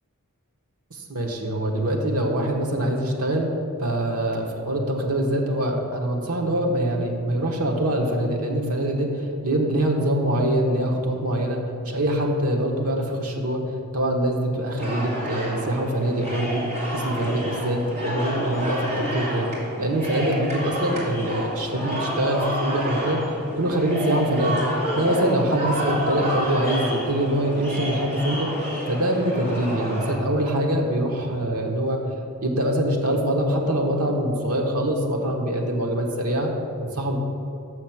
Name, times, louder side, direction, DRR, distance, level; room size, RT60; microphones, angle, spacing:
voice 1, 0.9-3.5 3.8-11.6 11.8-13.6 13.9-16.6 16.9-19.5 19.8-23.2 23.6-28.5 28.9-32.0 32.4-36.5 36.9-37.2, right 1 dB, 80° right, 0 dB, 1.2 m, -24 dB
sound 1, 14.8-30.1, equal, 30° right, 2.0 m, -29 dB
6.4 x 6.4 x 6.0 m, 2.7 s
head